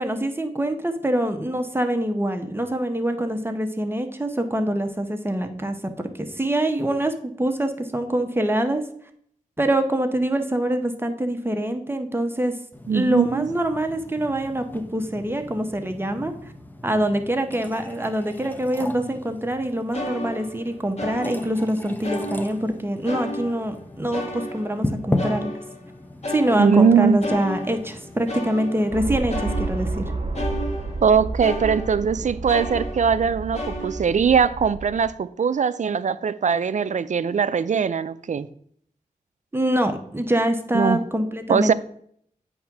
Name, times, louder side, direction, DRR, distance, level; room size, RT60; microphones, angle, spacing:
voice 1, 0.0-8.8 9.6-12.5 12.9-16.3 16.8-25.5 26.3-30.1 39.5-41.7, right 1 dB, 15° right, 1.0 m, -25 dB
sound 1, 12.7-29.0, left 1 dB, 10° left, 0.7 m, -36 dB
voice 2, 12.9-13.5 26.6-27.2 31.0-38.5 40.7-41.0 41.5-41.7, right 6 dB, 55° right, 0.4 m, -21 dB
sound 2, 19.5-19.6 19.9-21.7 22.0-22.8 23.1-25.9 26.2-32.1 32.5-33.2 33.5-34.3, left 1 dB, 50° left, 1.5 m, -33 dB
sound 3, 28.9-35.1, right 3 dB, 40° right, 1.4 m, -31 dB
8.4 x 3.6 x 5.9 m
cardioid pair, 60°, 15 cm